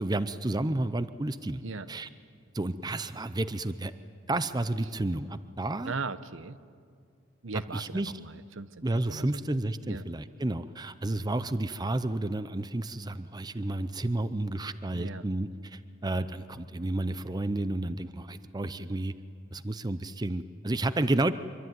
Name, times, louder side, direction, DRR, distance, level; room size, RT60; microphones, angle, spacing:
voice 1, 0.0-1.6 1.9-2.1 2.5-3.9 4.3-5.9 7.7-8.1 8.8-19.1 19.5-21.3, right 2 dB, 20° right, 13 dB, 0.6 m, -31 dB
voice 2, 5.8-6.6 7.4-9.4 9.9-10.1 14.9-15.2, right 4 dB, 70° right, 13 dB, 0.9 m, -38 dB
25.0 x 24.0 x 9.4 m, 2.2 s
head